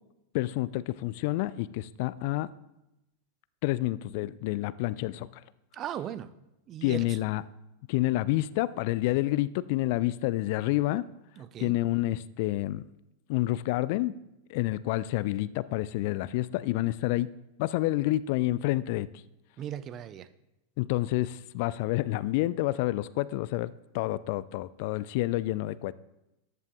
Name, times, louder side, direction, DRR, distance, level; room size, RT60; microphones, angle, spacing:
voice 1, 0.3-2.5 3.6-5.3 6.8-7.4 7.9-11.1 11.6-12.8 13.3-14.2 14.5-17.3 17.6-19.1 20.8-25.9, left 17 dB, 50° left, 18 dB, 0.3 m, -28 dB
voice 2, 5.7-6.3 6.7-7.0 11.4-11.7 19.6-20.3, right 10 dB, 30° right, 14 dB, 0.5 m, -37 dB
14.0 x 10.5 x 2.4 m, 0.93 s
figure-of-eight pair, 90°, 0 cm